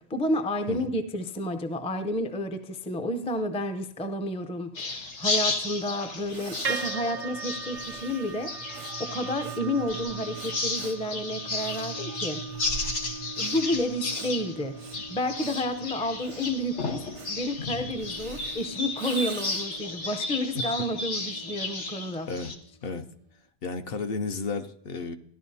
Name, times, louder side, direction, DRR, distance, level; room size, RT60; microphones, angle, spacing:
voice 1, 0.0-12.4 13.4-17.0 17.3-22.3, left 1 dB, 10° left, 8 dB, 0.4 m, -31 dB
sound 1, 4.7-22.5, left 3 dB, 90° left, 1.4 m, -33 dB
Breathing, 5.8-5.9 6.2-19.9, right 6 dB, 85° right, 1.0 m, -45 dB
sound 2, 6.6-22.9, right 5 dB, 50° right, 0.5 m, -41 dB
voice 2, 23.6-25.2, left 4 dB, 60° left, 8 dB, 0.8 m, -32 dB
14.5 x 11.0 x 2.7 m, 0.68 s
omnidirectional pair, 1.2 m